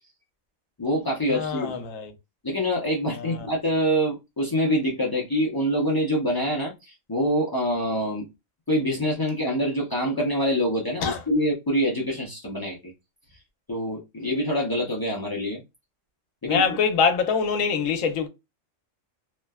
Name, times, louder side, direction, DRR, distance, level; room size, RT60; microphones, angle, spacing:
voice 1, 0.8-1.7 2.4-8.3 8.7-12.9 13.3-13.4 13.7-15.6 16.4-16.6, equal, 35° left, 0.3 m, -25 dB
voice 2, 1.3-2.1 3.1-3.4 11.0-11.2 16.4-18.3, left 6 dB, 75° left, 1.0 m, -24 dB
3.1 x 2.1 x 2.2 m
omnidirectional pair, 1.4 m